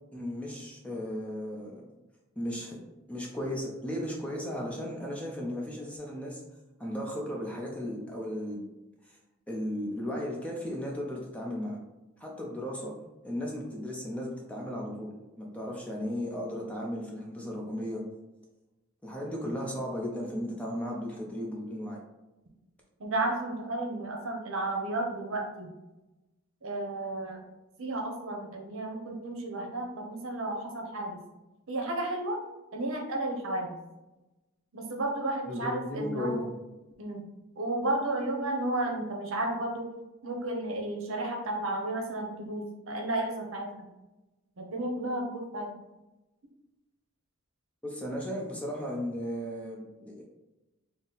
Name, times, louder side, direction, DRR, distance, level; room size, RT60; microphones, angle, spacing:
voice 1, 0.1-1.8 2.4-2.8 3.1-6.4 6.8-8.7 9.0-9.2 9.5-11.8 12.2-12.9 13.2-15.1 15.4-18.0 19.0-22.0 35.5-36.5 47.8-50.2, equal, 5° left, -2 dB, 0.5 m, -35 dB
voice 2, 23.0-25.7 26.6-27.4 27.8-31.2 31.7-32.4 32.7-33.8 34.7-36.4 37.0-37.3 37.6-39.8 40.2-43.9 44.6-45.7, right 2 dB, 65° right, 1 dB, 0.7 m, -33 dB
4.0 x 2.0 x 3.9 m, 1.0 s
head